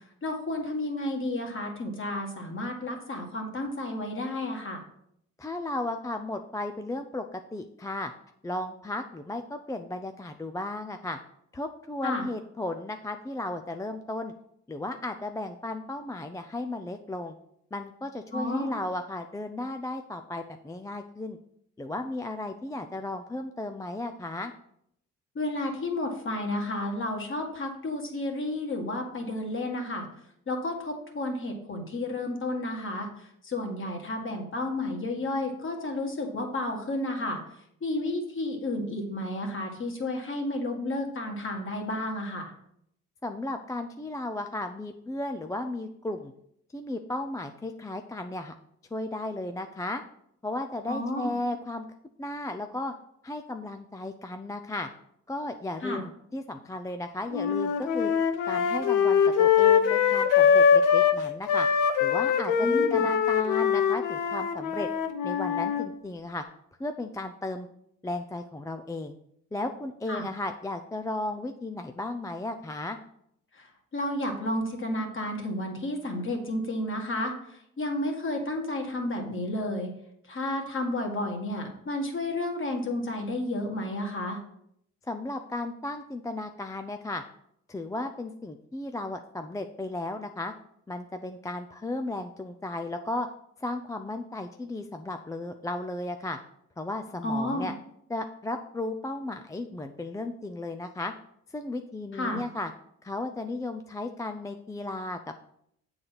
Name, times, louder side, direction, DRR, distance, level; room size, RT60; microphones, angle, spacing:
voice 1, 0.2-4.8 12.0-12.2 18.3-18.7 25.4-30.1 30.5-33.1 33.4-37.4 37.8-42.5 50.9-51.3 55.8-56.0 62.6-63.0 70.1-70.2 73.6-73.7 73.9-79.9 80.3-84.4 97.2-97.7 102.1-102.4, left 1 dB, 40° left, 2 dB, 1.8 m, -31 dB
voice 2, 5.4-8.1 8.4-11.2 11.5-14.3 14.7-17.4 17.7-21.4 21.8-24.5 43.2-46.3 46.7-48.5 48.9-50.0 50.4-51.9 52.2-52.9 53.2-54.9 55.3-58.1 58.5-61.7 62.0-64.9 65.2-66.4 66.8-67.7 68.0-69.2 69.5-73.0 85.0-87.2 87.7-90.5 90.9-93.3 93.6-96.4 96.8-97.7 98.1-101.1 101.5-102.7 103.0-105.4, left 2 dB, 10° left, 6 dB, 0.4 m, -35 dB
sound 1, 57.3-61.2 61.5-65.9, left 7 dB, 85° left, 0.7 m, -23 dB
7.7 x 4.0 x 5.8 m, 0.73 s
cardioid pair, 90°, 30 cm